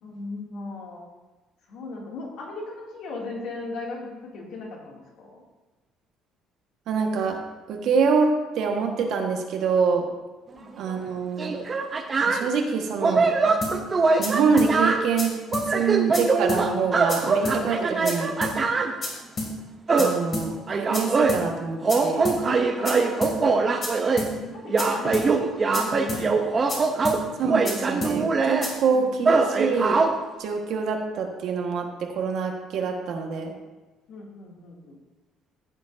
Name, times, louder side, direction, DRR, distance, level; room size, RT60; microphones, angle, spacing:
voice 1, 0.0-1.1 1.7-5.4 10.5-10.7 22.7-26.8 28.9-29.4 34.1-35.0, left 3 dB, 65° left, -2 dB, 2.6 m, -38 dB
voice 2, 6.9-7.4 7.7-10.0 10.8-11.5 12.3-13.3 14.2-15.3 15.7-18.3 20.0-22.3 27.4-30.0 30.4-33.5, right 5 dB, 60° right, 2 dB, 1.5 m, -25 dB
sound 1, 10.9-11.0 11.4-12.5 13.0-15.1 15.5-18.9 19.9-20.2 20.7-21.4 21.8-24.3 24.7-28.7 29.2-30.2, right 4 dB, 25° right, 0.7 m, -23 dB
sound 2, 13.6-13.8 14.2-14.3 14.6-14.7 15.2-15.3 15.5-15.7 16.1-16.2 16.5-16.6 17.1-17.2 17.5-17.6 18.1-18.2 18.4-18.6 19.0-19.1 19.4-19.5 20.0-20.1 20.3-20.5 20.9-21.0 21.3-21.4 21.9-22.0 22.3-22.4 22.9-23.0 23.2-23.4 23.8-23.9 24.2-24.3 24.8-24.9 25.1-25.3 25.7-25.8 26.1-26.2 26.7-26.8 27.1-27.2 27.7-27.8 28.0-28.2 28.6-28.7, left 3 dB, 35° left, 2.5 m, -30 dB
15.0 x 8.2 x 2.7 m, 1.2 s
cardioid pair, 160°, 0 cm